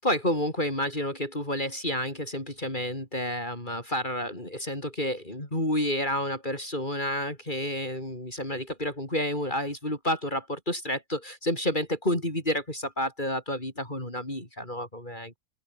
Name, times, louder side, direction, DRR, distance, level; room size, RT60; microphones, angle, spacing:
voice 1, 0.0-15.4, left 1 dB, 35° left, 7.0 m, -30 dB
open air
omnidirectional pair, 1.5 m